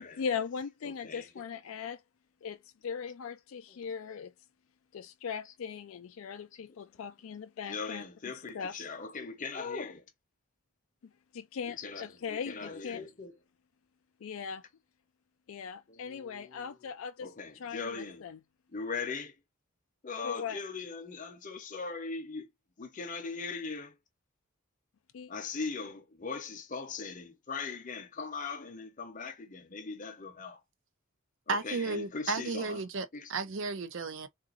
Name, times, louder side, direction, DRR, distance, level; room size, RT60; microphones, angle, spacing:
voice 1, 0.0-2.0 2.4-4.3 4.9-8.0 8.3-8.8 11.3-13.0 14.2-14.6 15.5-18.4 20.2-20.6 25.1-25.3, left 6 dB, 70° left, 0.4 m, -39 dB
voice 2, 0.9-1.3 7.7-10.0 11.7-13.3 15.9-16.6 17.2-18.2 18.7-19.3 20.0-22.5 22.8-23.9 25.3-30.6 31.5-32.8 33.1-33.3, left 4 dB, 35° left, 0.7 m, -40 dB
voice 3, 31.5-34.3, right 4 dB, 60° right, 0.6 m, -34 dB
3.8 x 2.5 x 2.5 m
head